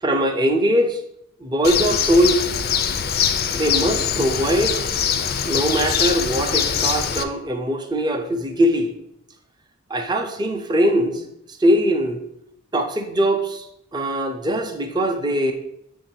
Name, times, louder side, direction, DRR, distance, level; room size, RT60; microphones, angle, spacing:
voice 1, 0.0-1.0 1.4-2.5 3.5-4.8 5.5-8.9 9.9-11.2 11.6-12.2 12.7-13.7 13.9-15.5, equal, 20° right, 5 dB, 0.5 m, -21 dB
Bird, 1.6-7.2, left 8 dB, 45° left, 0.4 m, -23 dB
7.3 x 2.6 x 5.6 m, 0.79 s
head